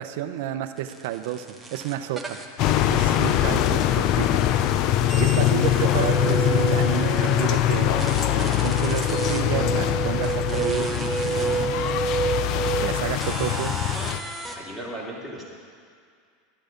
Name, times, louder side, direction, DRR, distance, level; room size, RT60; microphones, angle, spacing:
voice 1, 0.0-2.4 2.9-4.4 5.1-8.0 8.6-11.6 12.5-13.9, right 12 dB, 70° right, 9 dB, 0.7 m, -31 dB
sound 1, 0.8-3.9 4.2-7.5 8.0-9.4 10.2-11.7 12.3-12.4 13.2-14.6, right 2 dB, 10° right, 1.1 m, -34 dB
sound 2, 2.6-14.2, left 12 dB, 50° left, 0.5 m, -23 dB
voice 2, 5.2-5.6 14.5-15.5, right 1 dB, 10° left, -4 dB, 2.7 m, -38 dB
sound 3, 6.0-13.2, right 6 dB, 30° right, 0.6 m, -29 dB
12.5 x 10.5 x 5.2 m, 2.1 s
supercardioid pair, 140°, 0 cm